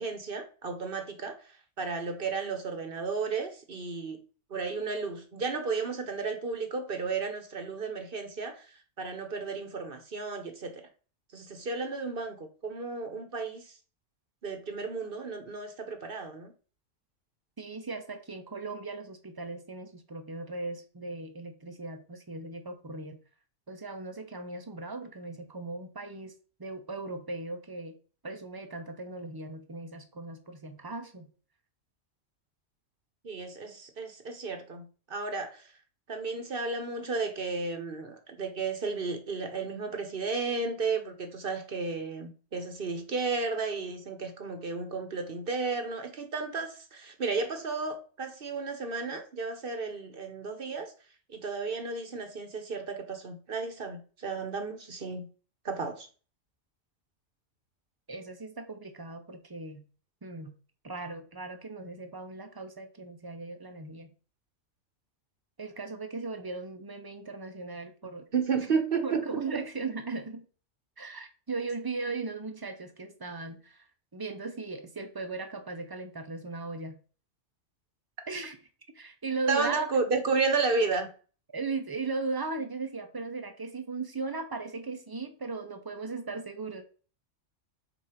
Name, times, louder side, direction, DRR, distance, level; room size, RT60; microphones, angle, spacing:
voice 1, 0.0-1.3 1.8-4.2 4.5-8.7 9.0-10.8 11.3-13.6 14.4-16.5 33.2-35.6 36.1-50.9 51.3-55.3 55.6-56.1 68.3-69.2 69.5-69.6 79.5-81.1, right 4 dB, 50° right, 1.1 m, -33 dB
voice 2, 17.6-23.2 23.7-26.3 26.6-28.0 28.2-31.3 58.1-59.8 60.2-60.6 60.8-64.1 65.6-68.3 69.0-70.5 71.0-73.8 74.1-77.0 78.3-78.6 78.9-79.9 81.5-86.8, right 3 dB, 25° right, 0.6 m, -37 dB
7.0 x 2.7 x 5.0 m
omnidirectional pair, 1.3 m